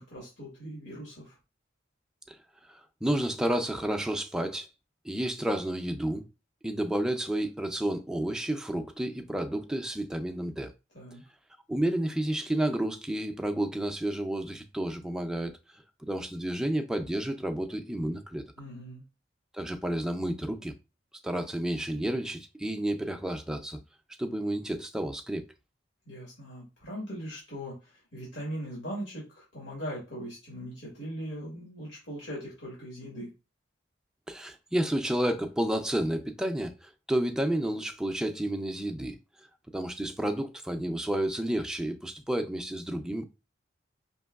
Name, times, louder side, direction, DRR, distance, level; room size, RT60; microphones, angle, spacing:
voice 1, 0.0-1.4 10.9-11.2 18.6-19.0 26.1-33.3, equal, 85° left, 1.7 m, -40 dB
voice 2, 2.7-4.7 5.0-6.3 6.6-10.7 11.7-15.6 16.0-18.4 19.5-20.7 21.2-23.8 24.2-25.5 34.3-39.2 39.7-43.2, right 1 dB, 5° right, 0.4 m, -31 dB
5.2 x 2.9 x 2.3 m
head